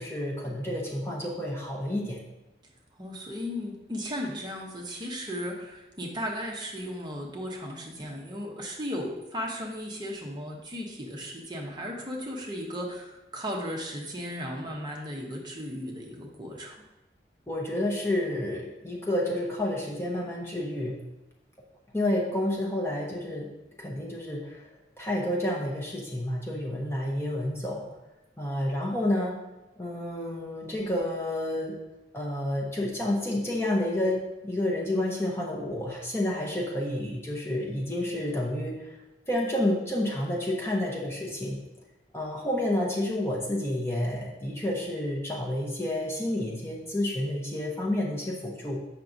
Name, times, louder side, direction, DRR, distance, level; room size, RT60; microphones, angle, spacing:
voice 1, 0.0-2.2 17.5-21.0 21.9-23.5 23.8-24.7 25.0-27.9 28.4-29.4 29.8-31.8 32.1-39.0 39.3-41.6 42.1-48.8, left 1 dB, 15° left, -3 dB, 0.7 m, -30 dB
voice 2, 3.0-16.8, equal, 25° right, -1 dB, 0.8 m, -36 dB
7.3 x 5.8 x 2.6 m, 1.0 s
head